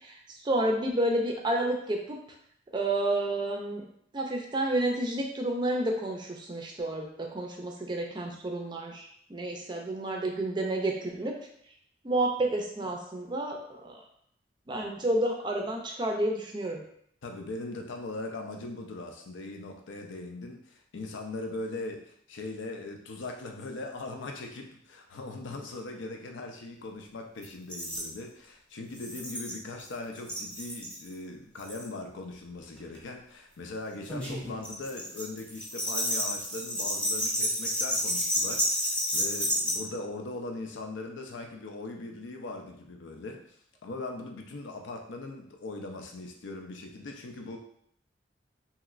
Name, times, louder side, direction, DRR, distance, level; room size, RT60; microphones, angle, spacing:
voice 1, 0.0-2.2 2.7-3.8 4.1-11.4 12.0-14.0 14.7-16.8, right 1 dB, 25° right, 1 dB, 0.4 m, -30 dB
voice 2, 17.2-43.4 43.8-47.6, left 2 dB, 85° left, 3 dB, 0.5 m, -40 dB
sound 1, 27.4-27.5 27.7-28.1 28.9-29.9 30.1-31.0 31.6-31.9 32.8-33.0 34.0-39.8, equal, 5° left, 0.8 m, -30 dB
3.0 x 2.9 x 2.4 m, 0.67 s
head